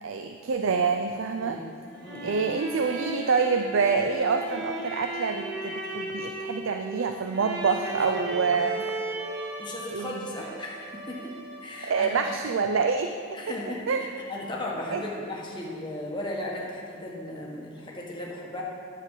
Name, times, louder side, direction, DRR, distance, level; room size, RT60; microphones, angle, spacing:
voice 1, 0.0-1.6 2.2-8.8 9.9-10.2 11.8-13.1 13.5-13.6 13.9-14.1 14.9-15.0, right 5 dB, 80° right, 6 dB, 0.5 m, -26 dB
sound 1, 1.7-12.5, right 2 dB, 55° right, 1.5 m, -37 dB
voice 2, 2.0-2.5 7.7-7.8 8.0-8.4 9.3-11.4 11.6-12.4 13.3-13.9 14.3-18.6, left 1 dB, 25° left, -4 dB, 1.6 m, -36 dB
11.0 x 7.5 x 5.6 m, 2.2 s
head